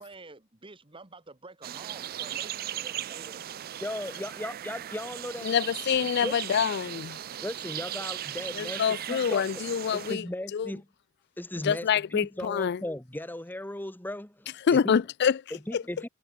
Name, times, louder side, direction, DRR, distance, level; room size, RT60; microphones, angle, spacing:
voice 1, 0.0-3.7, right 3 dB, 25° right, 1.8 m, -49 dB
sound 1, 1.6-10.1, right 11 dB, 45° right, 0.4 m, -37 dB
voice 2, 3.8-5.6 6.2-6.4 7.4-9.4 9.9-10.8 11.4-15.0 15.5-16.1, left 1 dB, 10° left, 1.2 m, -37 dB
voice 3, 5.4-7.2 8.5-10.3 10.5-10.7 11.6-12.8 14.6-15.4 15.7-15.8, left 7 dB, 55° left, 0.4 m, -26 dB
head